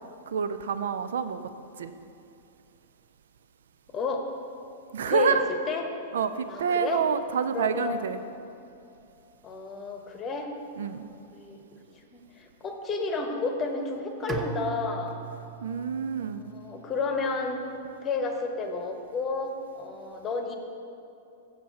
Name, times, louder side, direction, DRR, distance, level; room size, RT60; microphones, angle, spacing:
voice 1, 0.3-1.4 1.8-1.9 4.9-5.5 6.1-8.2 10.8-11.1 15.6-16.4, right 7 dB, 60° right, 11 dB, 0.3 m, -27 dB
voice 2, 3.9-4.2 5.1-5.4 5.7-5.9 6.5-7.1 7.5-8.1 9.4-10.5 10.9-11.6 12.1-15.2 16.2-17.6 18.0-20.6, left 4 dB, 25° left, 4 dB, 1.0 m, -31 dB
Bowed string instrument, 14.3-17.3, right 5 dB, 15° right, 0.6 m, -39 dB
7.3 x 7.2 x 5.5 m, 2.7 s
figure-of-eight pair, 95°, 0 cm